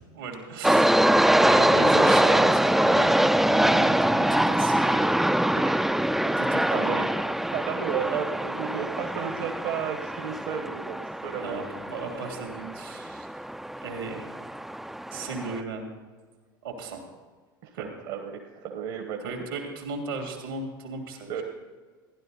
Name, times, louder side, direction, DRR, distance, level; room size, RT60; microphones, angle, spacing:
voice 1, 0.1-5.1 6.4-7.0 11.4-11.6 11.9-13.3 13.8-14.2 15.1-15.9 16.6-17.0 17.7-17.9 19.2-21.4, right 3 dB, 85° right, 2 dB, 2.9 m, -36 dB
sound 1, 0.6-15.6, right 1 dB, ahead, 0.3 m, -24 dB
voice 2, 5.5-5.9 6.7-11.0 11.2-11.6 17.6-19.4 21.3-21.4, right 7 dB, 65° right, 3 dB, 1.2 m, -33 dB
15.0 x 11.0 x 4.0 m, 1.5 s
hypercardioid pair, 80°, 11 cm